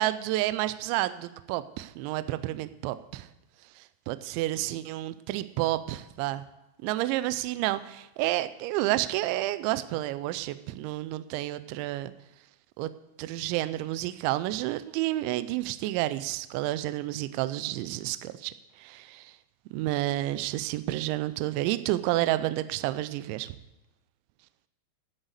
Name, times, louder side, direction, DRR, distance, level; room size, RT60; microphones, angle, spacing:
voice 1, 0.0-3.3 3.8-6.4 6.8-12.1 12.8-12.9 13.2-18.5 18.8-19.3 19.7-23.6, right 16 dB, 85° right, 13 dB, 2.6 m, -30 dB
10.5 x 8.1 x 8.0 m, 0.95 s
omnidirectional pair, 5.8 m